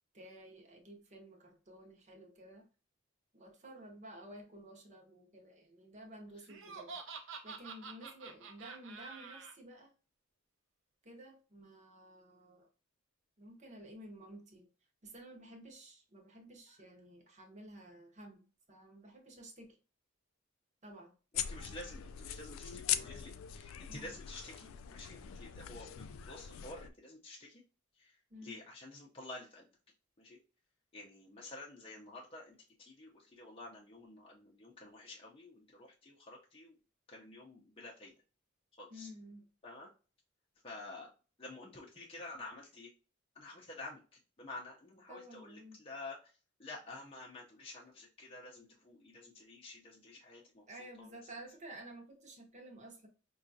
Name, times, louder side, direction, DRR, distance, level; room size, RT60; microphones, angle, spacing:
voice 1, 0.1-2.7 3.3-9.9 11.0-12.7 13.4-14.7 15.0-19.8 20.8-21.1 23.9-24.1 28.3-28.6 38.9-39.4 45.1-45.8 50.7-53.1, right 1 dB, 35° right, 0.8 m, -53 dB
Laughter, 6.5-9.5, right 5 dB, 65° right, 0.6 m, -47 dB
sound 1, 21.3-26.9, left 10 dB, 80° left, 0.3 m, -41 dB
voice 2, 21.3-27.6 28.0-29.7 30.2-30.4 30.9-36.7 37.1-38.1 38.8-39.1 39.6-39.9 40.6-41.1 41.4-42.9 43.4-46.3 46.6-51.3, left 2 dB, 30° left, 0.6 m, -50 dB
4.9 x 2.3 x 2.6 m
head